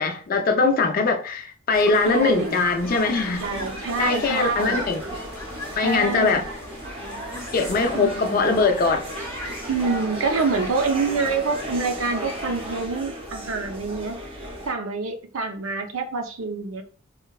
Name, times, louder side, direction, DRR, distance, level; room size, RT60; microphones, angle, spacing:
voice 1, 0.0-3.5 4.0-5.0 5.8-6.4 7.5-9.0, left 3 dB, 45° left, 0.4 m, -21 dB
sound 1, 1.7-12.9, left 1 dB, 15° left, 0.7 m, -37 dB
voice 2, 2.1-2.6 3.4-4.9 5.7-6.5 7.9-8.5 9.7-14.2 14.7-16.8, right 4 dB, 80° right, 0.5 m, -26 dB
sound 2, 2.7-14.7, right 1 dB, 25° right, 0.5 m, -36 dB
3.7 x 2.1 x 2.2 m
head